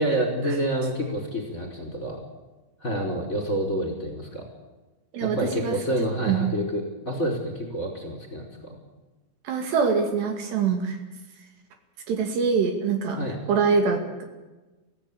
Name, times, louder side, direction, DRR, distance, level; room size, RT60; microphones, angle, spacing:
voice 1, 0.0-2.2 2.8-4.4 5.2-8.8 13.1-13.4, right 1 dB, 15° left, 3 dB, 4.7 m, -28 dB
voice 2, 5.1-5.8 6.2-6.5 9.5-11.0 12.1-13.2 13.5-14.2, right 5 dB, 65° right, 5 dB, 4.3 m, -24 dB
24.5 x 16.0 x 8.6 m, 1.2 s
omnidirectional pair, 5.4 m